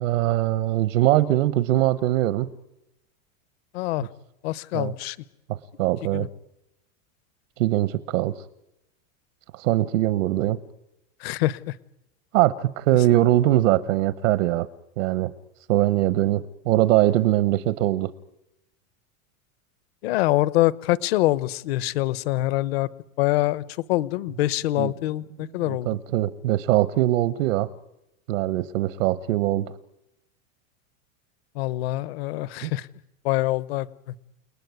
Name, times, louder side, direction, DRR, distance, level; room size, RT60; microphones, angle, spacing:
voice 1, 0.0-2.5 4.7-4.9 5.8-6.3 7.6-8.3 9.5-10.6 12.3-14.7 15.0-15.3 15.7-18.1 24.8-24.9 25.6-27.7 28.3-29.7 32.6-32.7, right 14 dB, 60° right, 14 dB, 1.1 m, -22 dB
voice 2, 3.7-4.1 4.4-5.2 6.1-6.3 11.2-11.7 20.0-22.9 23.2-26.0 31.5-32.9 33.2-33.9, left 17 dB, 45° left, 18 dB, 1.0 m, -25 dB
29.5 x 19.5 x 9.5 m, 0.90 s
supercardioid pair, 180°, 42 cm